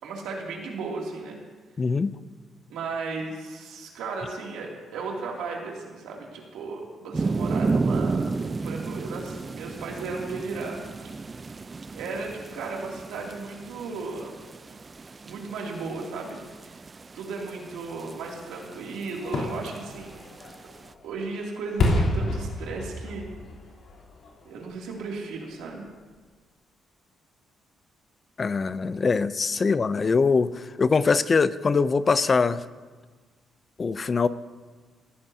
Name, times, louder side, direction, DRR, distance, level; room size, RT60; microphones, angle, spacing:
voice 1, 0.0-1.4 2.7-11.1 11.9-14.4 15.2-16.4 17.1-20.2 21.0-23.3 24.4-25.8 29.6-29.7, right 4 dB, 90° right, -1 dB, 2.7 m, -35 dB
voice 2, 1.8-2.1 28.4-32.6 33.8-34.3, left 4 dB, 35° left, 14 dB, 0.5 m, -23 dB
sound 1, 7.1-20.9, right 4 dB, 30° right, 0.5 m, -33 dB
Fireworks, 19.2-25.0 25.4-25.5, left 2 dB, 70° left, 3.4 m, -30 dB
19.5 x 14.5 x 2.8 m, 1.4 s
cardioid pair, 90°, 0 cm